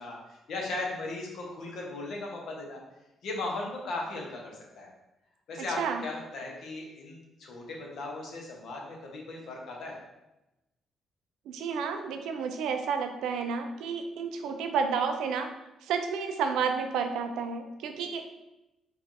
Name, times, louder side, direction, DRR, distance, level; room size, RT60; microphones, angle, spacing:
voice 1, 0.0-2.8 3.2-4.9 5.5-10.0, left 2 dB, 70° left, -1 dB, 0.8 m, -37 dB
voice 2, 5.6-6.0 11.5-15.5 15.8-18.3, right 6 dB, 85° right, 6 dB, 0.4 m, -31 dB
4.4 x 2.4 x 2.6 m, 0.95 s
cardioid pair, 90°, 0 cm